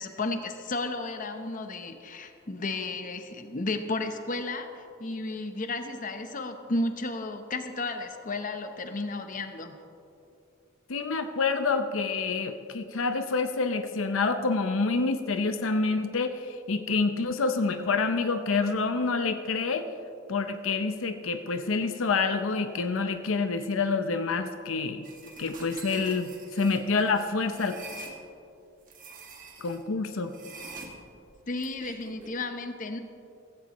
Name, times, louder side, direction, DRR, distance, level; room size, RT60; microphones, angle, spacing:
voice 1, 0.0-9.8 31.5-33.0, left 2 dB, 40° left, 7 dB, 0.8 m, -33 dB
voice 2, 10.9-19.9 20.3-25.1 25.4-27.8 29.6-30.3, left 4 dB, 80° left, 8 dB, 0.6 m, -27 dB
sound 1, 25.0-28.2 28.9-29.8 30.3-32.3, right 3 dB, 45° right, 1.7 m, -45 dB
15.5 x 15.5 x 3.0 m, 2.6 s
head